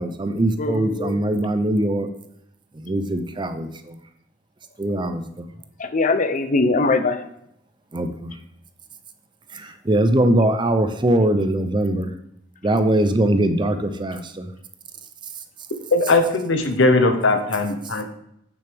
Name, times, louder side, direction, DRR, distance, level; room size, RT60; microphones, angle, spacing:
voice 1, 0.0-2.1 2.7-4.0 4.8-5.5 7.9-8.3 9.5-12.1 12.6-14.5, right 1 dB, 25° right, 9 dB, 0.5 m, -21 dB
voice 2, 0.6-1.2 5.8-7.3, left 3 dB, 40° left, 10 dB, 0.6 m, -21 dB
voice 3, 15.9-18.0, left 2 dB, 65° left, 7 dB, 0.9 m, -19 dB
8.5 x 6.7 x 3.5 m, 0.76 s
head